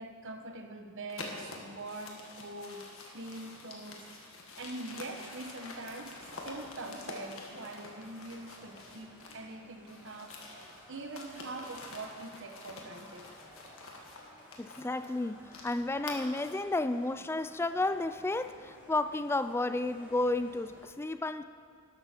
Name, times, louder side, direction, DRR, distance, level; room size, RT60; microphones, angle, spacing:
voice 1, 0.0-4.1 4.6-13.3, right 2 dB, 60° right, 5 dB, 1.1 m, -44 dB
sound 1, 1.1-9.5 9.8-16.7, left 3 dB, 65° left, 1.8 m, -47 dB
sound 2, 5.1-20.8, equal, 10° right, 2.5 m, -56 dB
voice 2, 14.6-21.4, left 2 dB, 10° left, 12 dB, 0.3 m, -32 dB
13.0 x 12.0 x 4.4 m, 2.1 s
head